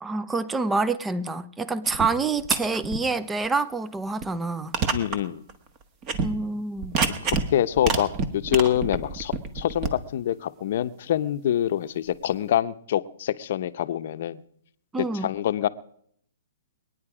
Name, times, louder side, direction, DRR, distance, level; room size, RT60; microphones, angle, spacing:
voice 1, 0.0-4.8 6.2-7.0 14.9-15.3, right 3 dB, 10° right, 15 dB, 0.6 m, -27 dB
sound 1, 1.8-2.1 2.4-3.0 3.4-3.5 4.2-4.3 4.7-5.2 5.5-5.6 6.0-6.3 6.8-7.5 7.8-9.9, right 5 dB, 25° right, 1.3 m, -27 dB
voice 2, 4.9-5.4 7.3-14.4 15.2-15.7, left 11 dB, 55° left, 11 dB, 0.8 m, -25 dB
22.5 x 9.5 x 4.9 m, 0.68 s
hypercardioid pair, 150°, 0 cm